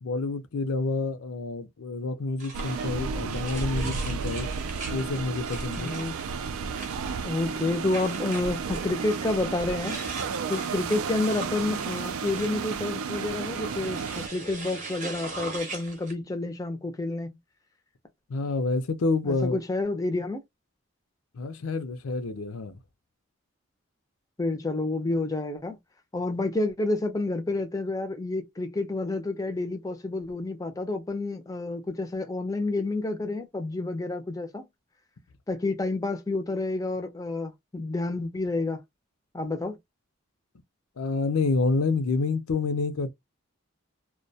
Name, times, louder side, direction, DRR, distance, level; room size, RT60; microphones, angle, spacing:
voice 1, 0.0-4.5 4.9-5.9 18.3-19.6 21.3-22.8 41.0-43.1, left 3 dB, 85° left, 0.5 m, -28 dB
sound 1, 2.4-16.1, right 3 dB, 35° right, 0.7 m, -41 dB
sound 2, 2.5-14.3, right 5 dB, 85° right, 0.3 m, -32 dB
voice 2, 5.8-6.1 7.2-10.0 10.5-17.4 19.2-20.4 24.4-25.8 26.1-34.6 35.5-38.8 39.3-39.8, left 2 dB, 15° left, 0.4 m, -29 dB
2.2 x 2.1 x 2.6 m
head